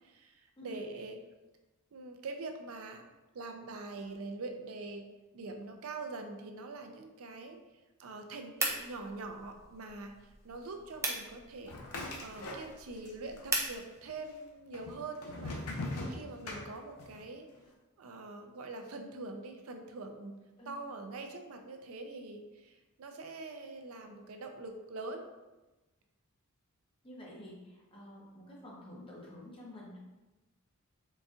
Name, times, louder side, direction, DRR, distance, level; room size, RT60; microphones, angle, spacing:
voice 1, 0.0-1.2 1.9-3.0 3.3-5.1 5.3-7.6 8.0-10.1 10.4-11.7 12.2-15.6 16.1-17.5 18.0-20.4 20.7-25.2, right 3 dB, 65° right, 4 dB, 0.5 m, -44 dB
sound 1, 8.6-13.8, right 2 dB, 15° right, 0.4 m, -39 dB
sound 2, 11.7-13.1 13.4-14.1 14.7-17.2, left 2 dB, 75° left, 0.6 m, -40 dB
voice 2, 27.0-30.0, left 1 dB, 25° left, -4 dB, 0.8 m, -49 dB
4.0 x 2.4 x 3.6 m, 1.1 s
head